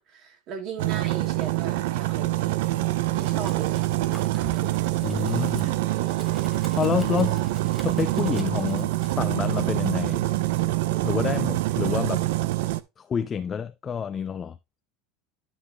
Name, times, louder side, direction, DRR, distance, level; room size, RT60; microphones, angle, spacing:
voice 1, 0.0-2.4 3.1-3.9 4.3-4.8 5.6-5.9, right 6 dB, 45° right, 3.2 m, -37 dB
sound 1, 0.8-12.8, right 17 dB, 75° right, 0.7 m, -25 dB
Domestic sounds home sounds, 3.2-9.1, right 1 dB, 5° right, 2.8 m, -49 dB
voice 2, 5.0-5.7 6.8-7.5 7.8-10.3 11.0-12.3 13.0-14.6, left 7 dB, 25° left, 0.5 m, -28 dB
12.0 x 5.7 x 3.2 m
supercardioid pair, 135°, 0 cm